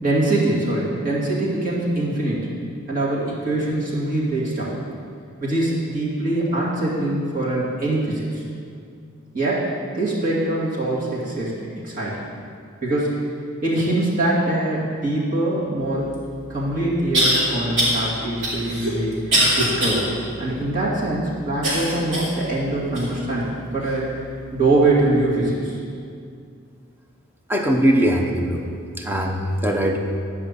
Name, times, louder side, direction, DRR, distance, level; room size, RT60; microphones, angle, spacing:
voice 1, 0.0-2.5 2.9-4.8 5.4-8.4 9.3-12.2 12.8-13.3 13.6-16.1 16.5-20.1 20.4-24.3 24.5-25.8, right 2 dB, 40° right, -7 dB, 2.4 m, -23 dB
sound 1, 16.1-16.2 17.1-17.4 17.8-18.0 18.4-20.0 20.5-20.6 21.6-22.4 22.9-23.1 23.8-23.9, equal, 60° right, 2.8 m, -21 dB
voice 2, 27.5-28.7 29.0-30.0, equal, 10° right, 1 dB, 0.8 m, -20 dB
10.5 x 5.7 x 6.8 m, 2.4 s
head